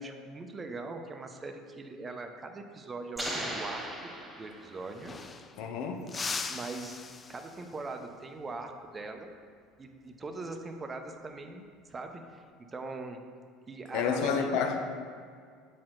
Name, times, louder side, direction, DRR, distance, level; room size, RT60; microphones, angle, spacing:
voice 1, 0.0-4.1 4.4-5.1 6.5-7.0 7.3-9.3 9.8-12.4 12.7-13.2 13.7-14.5, right 3 dB, 25° right, 5 dB, 0.7 m, -41 dB
sound 1, 3.2-5.0, equal, 10° right, 1.6 m, -37 dB
sound 2, 4.4-4.5 4.7-5.7 6.1-7.8 10.3-10.6 12.0-12.5, left 4 dB, 30° left, 0.4 m, -40 dB
voice 2, 5.6-6.1 13.9-14.8, left 6 dB, 70° left, 4 dB, 0.8 m, -29 dB
7.4 x 4.4 x 3.8 m, 2.1 s
supercardioid pair, 90°, 0 cm